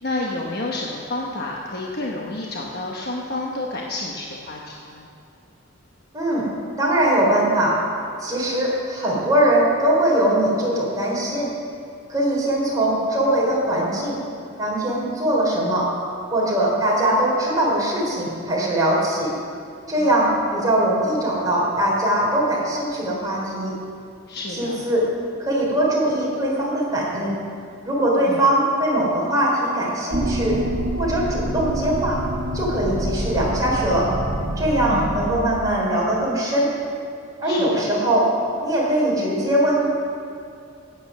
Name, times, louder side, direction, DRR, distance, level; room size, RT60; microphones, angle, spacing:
voice 1, 0.0-5.1 20.0-20.1 24.3-24.8 28.2-28.4 34.9-35.1 37.4-37.9, left 2 dB, 50° left, -2 dB, 1.1 m, -30 dB
voice 2, 6.1-6.5 6.8-7.8 8.2-11.5 12.1-14.2 14.6-15.9 16.3-19.3 19.9-23.7 24.5-25.1 25.4-27.3 27.8-30.6 30.9-32.2 32.5-34.1 34.6-36.7 37.4-38.3 38.6-39.9, right 1 dB, 20° right, -5 dB, 3.4 m, -21 dB
sound 1, 30.1-35.3, right 1 dB, 55° right, 1.2 m, -27 dB
15.0 x 8.8 x 6.2 m, 2.5 s
head